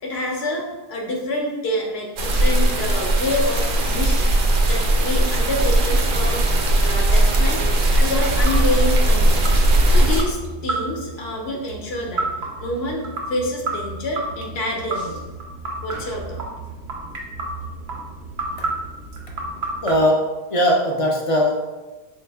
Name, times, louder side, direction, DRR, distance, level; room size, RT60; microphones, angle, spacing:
voice 1, 0.0-4.3 4.7-6.4 6.8-7.7 8.0-12.3 12.6-15.2 15.8-16.4, left 1 dB, 70° left, 0 dB, 0.9 m, -27 dB
sound 1, 2.2-10.2, right 1 dB, 60° right, 0.7 m, -18 dB
sound 2, 7.7-20.0, right 2 dB, 80° right, 0.9 m, -32 dB
voice 2, 19.8-21.5, equal, 45° left, 0 dB, 0.5 m, -19 dB
4.0 x 2.7 x 3.3 m, 1.2 s
omnidirectional pair, 1.1 m